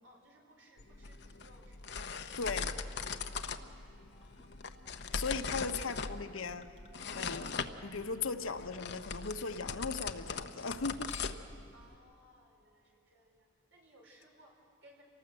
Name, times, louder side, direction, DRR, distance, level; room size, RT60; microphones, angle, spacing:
voice 1, 0.0-2.0 11.7-15.0, equal, 70° right, 0 dB, 4.9 m, -62 dB
sound 1, 0.8-12.0, left 5 dB, 55° left, 0.8 m, -41 dB
voice 2, 2.4-2.7 5.1-6.7 7.1-11.1, left 4 dB, 90° left, 8 dB, 1.0 m, -38 dB
sound 2, 2.5-7.5, left 3 dB, ahead, 3.7 m, -68 dB
Chink clink / Liquid, 4.2-9.7 10.1-10.7 11.1-11.6 12.4-12.5, left 6 dB, 30° left, 1.4 m, -59 dB
27.5 x 19.0 x 7.7 m, 2.4 s
head